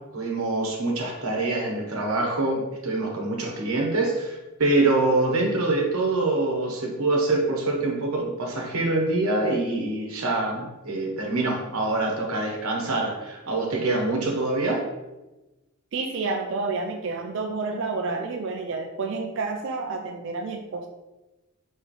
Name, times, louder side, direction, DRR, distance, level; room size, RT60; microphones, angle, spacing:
voice 1, 0.0-14.8, right 2 dB, 80° right, -1 dB, 1.0 m, -25 dB
voice 2, 15.9-20.9, right 3 dB, 55° right, 3 dB, 0.4 m, -29 dB
5.3 x 3.1 x 3.1 m, 1.1 s
head